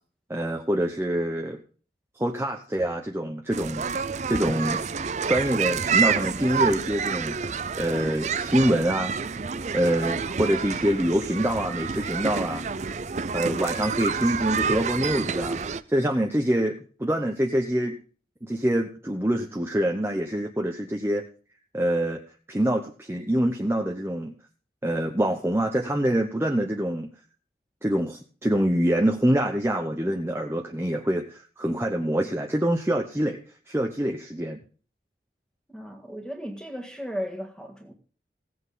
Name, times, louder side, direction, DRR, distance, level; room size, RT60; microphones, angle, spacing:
voice 1, 0.3-1.6 2.2-3.8 4.3-4.8 5.3-9.1 9.7-12.6 13.3-16.7 17.0-18.0 18.4-21.2 21.7-22.2 22.5-24.3 24.8-27.1 27.8-33.4 33.7-34.6, right 1 dB, 15° right, 0.8 m, -25 dB
sound 1, 3.5-15.8, right 6 dB, 40° right, 0.5 m, -28 dB
voice 2, 35.7-37.9, equal, 5° left, 1.8 m, -35 dB
16.5 x 8.2 x 3.9 m
head